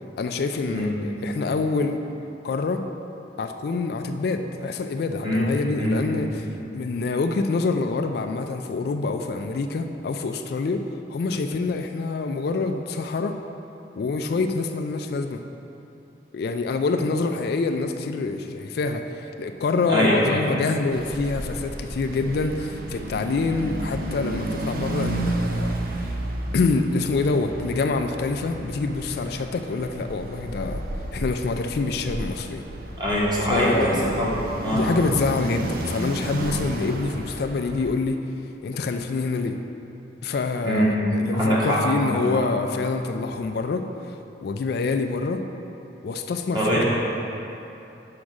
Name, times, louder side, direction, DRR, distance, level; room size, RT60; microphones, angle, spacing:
voice 1, 0.2-2.0 2.4-2.8 3.4-6.5 6.7-10.8 11.1-13.4 14.0-15.4 16.3-26.2 26.5-30.8 31.1-32.6 33.5-34.3 34.7-38.2 38.6-39.6 40.2-45.4 46.0-46.8, left 3 dB, 60° left, 6 dB, 0.3 m, -26 dB
voice 2, 5.8-6.3 19.9-20.4 33.0-35.0 40.6-41.0 41.3-42.2 46.5-46.8, equal, 25° right, -6 dB, 1.3 m, -23 dB
sound 1, 20.9-37.9, right 1 dB, 55° right, 0.5 m, -32 dB
5.2 x 4.8 x 6.2 m, 2.9 s
head